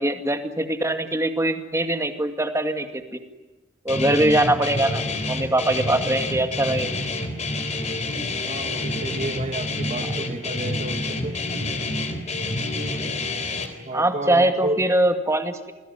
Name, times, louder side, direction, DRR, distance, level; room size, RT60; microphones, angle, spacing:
voice 1, 0.0-2.9 3.8-6.9 13.9-15.7, right 1 dB, 15° right, 6 dB, 2.2 m, -22 dB
Guitar, 3.9-13.7, left 2 dB, 35° left, 3.8 m, -28 dB
voice 2, 8.4-11.4 13.8-14.8, right 1 dB, 40° right, 8 dB, 1.6 m, -31 dB
28.0 x 20.0 x 9.7 m, 1.1 s
head